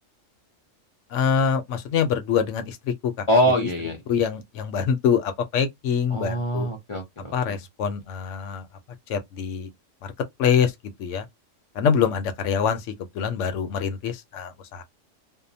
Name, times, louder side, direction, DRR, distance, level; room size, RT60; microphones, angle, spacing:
voice 1, 1.1-3.3 3.6-3.7 4.1-6.7 7.3-8.7 9.1-9.7 10.0-10.1 10.4-10.7 11.0-11.3 11.7-12.9 13.1-14.8, left 7 dB, 70° left, 0.9 m, -25 dB
voice 2, 3.3-4.0 6.1-7.6, equal, 40° left, 0.4 m, -24 dB
2.7 x 2.0 x 2.6 m
omnidirectional pair, 1.3 m